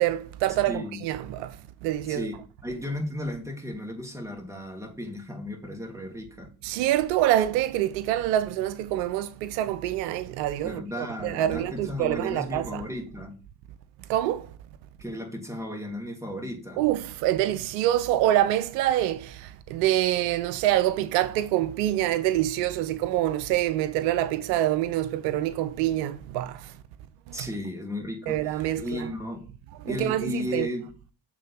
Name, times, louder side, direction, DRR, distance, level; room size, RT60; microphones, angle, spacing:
voice 1, 0.0-1.6 1.8-2.3 6.6-12.8 14.1-14.5 16.8-26.7 27.3-27.4 28.3-29.1 29.8-30.7, right 13 dB, 85° right, 0.6 m, -26 dB
voice 2, 0.7-1.0 2.1-6.5 10.6-13.3 15.0-16.8 27.3-29.4 29.8-30.9, left 1 dB, 5° right, 2.8 m, -35 dB
7.4 x 3.8 x 4.3 m
hypercardioid pair, 50°, 48 cm